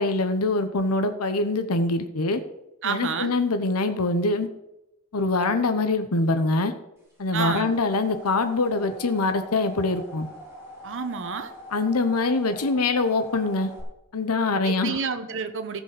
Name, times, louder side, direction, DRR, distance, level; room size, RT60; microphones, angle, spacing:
voice 1, 0.0-2.4 2.8-4.5 5.1-6.7 7.2-10.3 11.7-13.7 14.1-15.0, left 3 dB, 85° left, 9 dB, 1.0 m, -24 dB
voice 2, 2.8-3.3 7.3-7.7 10.8-11.5 14.6-15.8, right 5 dB, 60° right, 8 dB, 1.0 m, -29 dB
sound 1, 7.1-13.8, equal, 10° right, 3.3 m, -43 dB
15.0 x 5.2 x 6.7 m, 0.90 s
head